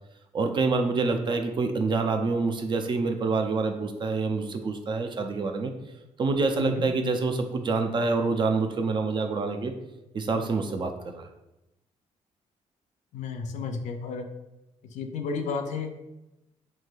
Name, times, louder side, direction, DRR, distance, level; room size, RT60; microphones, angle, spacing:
voice 1, 0.3-5.7 6.2-9.7 10.1-11.3, right 3 dB, 40° right, 6 dB, 0.4 m, -26 dB
voice 2, 13.1-14.3 14.9-15.9, left 5 dB, 75° left, 5 dB, 0.4 m, -32 dB
3.1 x 2.6 x 2.3 m, 0.95 s
cardioid pair, 85°, 12 cm